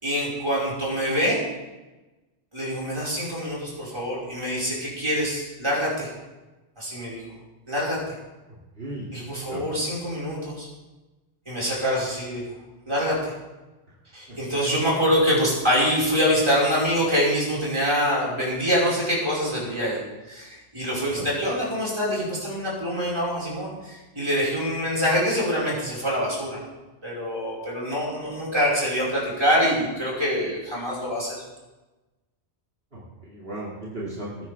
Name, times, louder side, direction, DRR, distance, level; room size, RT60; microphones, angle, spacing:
voice 1, 0.0-1.4 2.5-6.1 6.8-7.2 7.7-8.0 9.1-10.7 11.5-12.4 12.9-13.3 14.1-20.0 20.3-26.7 27.0-31.4, equal, 25° right, -7 dB, 5.2 m, -25 dB
voice 2, 8.8-9.1 9.5-9.6 21.2-21.3 32.9-34.5, right 1 dB, 60° right, -6 dB, 2.9 m, -35 dB
20.0 x 10.0 x 3.5 m, 1.1 s
omnidirectional pair, 1.1 m